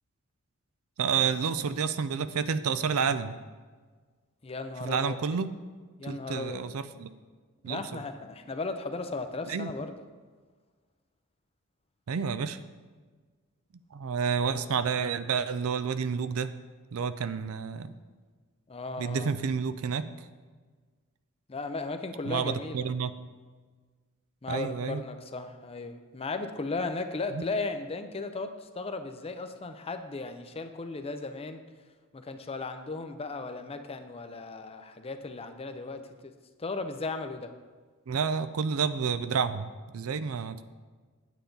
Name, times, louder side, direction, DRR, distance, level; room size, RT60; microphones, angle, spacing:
voice 1, 1.0-3.4 4.8-5.5 6.1-7.1 7.6-8.0 9.5-9.7 12.1-12.6 13.9-16.5 16.9-18.0 19.0-20.1 22.3-23.1 24.5-25.0 27.3-27.4 38.1-40.6, right 6 dB, 70° right, 12 dB, 0.5 m, -30 dB
voice 2, 4.4-5.2 6.0-6.6 7.6-9.9 18.7-19.3 21.5-22.9 24.4-31.6 32.1-36.3 36.6-37.5, left 3 dB, 25° left, 8 dB, 0.6 m, -36 dB
9.1 x 8.3 x 3.9 m, 1.4 s
head